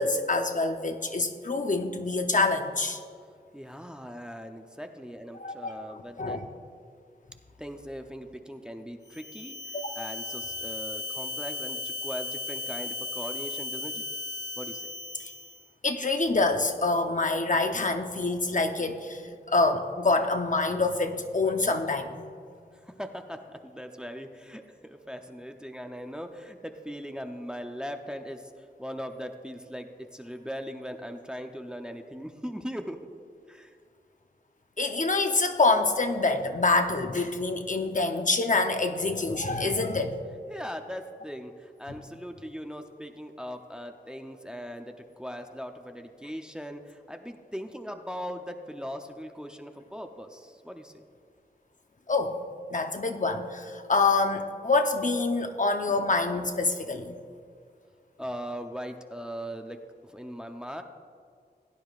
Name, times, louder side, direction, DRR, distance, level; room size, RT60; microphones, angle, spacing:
voice 1, 0.0-3.0 5.4-5.9 6.2-6.4 9.7-9.9 15.8-22.3 34.8-40.2 52.1-52.4 52.7-57.2, left 3 dB, 50° left, 5 dB, 0.8 m, -26 dB
voice 2, 3.5-6.4 7.6-14.0 14.6-14.9 22.7-33.0 33.5-33.8 40.5-51.1 58.2-60.8, equal, 5° right, 5 dB, 0.7 m, -40 dB
sound 1, 9.1-15.7, left 2 dB, 20° left, 1.3 m, -36 dB
16.5 x 9.8 x 2.4 m, 2.2 s
wide cardioid pair, 65°, 17 cm